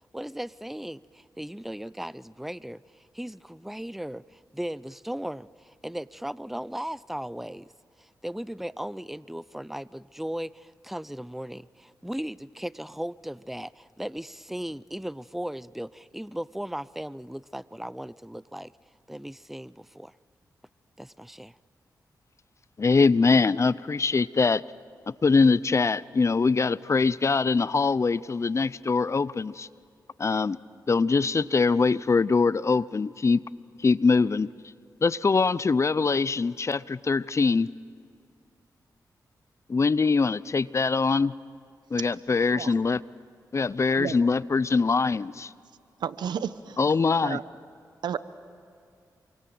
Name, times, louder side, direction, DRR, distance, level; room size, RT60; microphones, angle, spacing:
voice 1, 0.1-7.7 8.0-18.7 19.1-20.1 21.0-21.6, equal, 5° right, 19 dB, 0.6 m, -37 dB
voice 2, 22.8-24.6 25.1-29.7 30.2-30.6 30.9-33.4 33.8-34.5 35.0-37.7 39.7-41.3 41.9-43.0 43.5-45.5 46.8-47.4, left 4 dB, 40° left, 19 dB, 0.7 m, -23 dB
voice 3, 42.4-42.7 44.0-44.1 46.0-46.8 47.2-47.4 48.0-48.2, right 8 dB, 85° right, 14 dB, 0.9 m, -32 dB
27.5 x 24.5 x 7.8 m, 2.3 s
cardioid pair, 55°, 7 cm